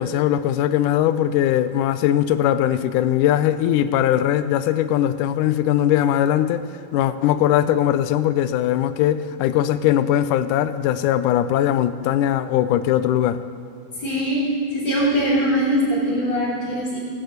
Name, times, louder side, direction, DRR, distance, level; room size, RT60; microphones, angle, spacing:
voice 1, 0.0-6.7 6.9-13.4, left 11 dB, 85° left, 11 dB, 1.8 m, -20 dB
voice 2, 13.9-17.0, equal, 30° left, -6 dB, 3.5 m, -22 dB
17.0 x 8.4 x 8.0 m, 2.8 s
omnidirectional pair, 4.3 m